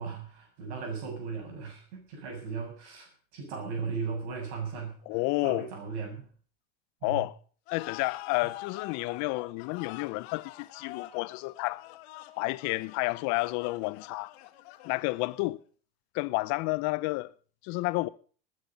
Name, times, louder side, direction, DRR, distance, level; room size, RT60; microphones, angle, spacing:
voice 1, 0.0-4.9 5.4-6.3 7.0-7.2, right 5 dB, 80° right, 7.1 m, -37 dB
voice 2, 5.1-5.7 7.0-7.3 7.7-11.8 12.4-14.3 14.8-15.6 16.1-17.3 17.6-18.1, left 23 dB, 60° left, 0.8 m, -30 dB
sound 1, 7.7-15.5, left 17 dB, 80° left, 1.8 m, -46 dB
19.5 x 9.7 x 5.3 m
supercardioid pair, 130°, 31 cm